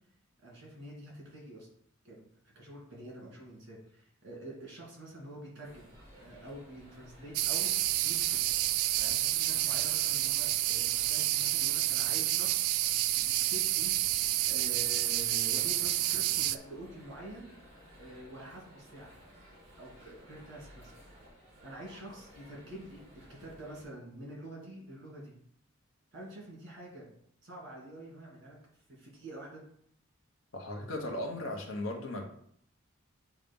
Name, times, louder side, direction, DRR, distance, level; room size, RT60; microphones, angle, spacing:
voice 1, 0.4-1.7 2.0-2.2 2.5-5.9 6.2-7.7 8.0-8.4 9.0-12.7 13.1-13.9 14.5-17.5 18.0-19.1 19.8-20.9 21.6-25.3 26.1-27.1 27.4-28.6 29.0-29.6, right 1 dB, 55° right, -3 dB, 2.4 m, -47 dB
sound 1, 5.6-23.8, equal, 30° right, 1.8 m, -56 dB
sound 2, 7.3-16.6, right 14 dB, 85° right, 0.3 m, -29 dB
voice 2, 30.5-32.3, left 1 dB, 70° left, 1 dB, 1.0 m, -37 dB
7.3 x 2.5 x 5.3 m, 0.66 s
head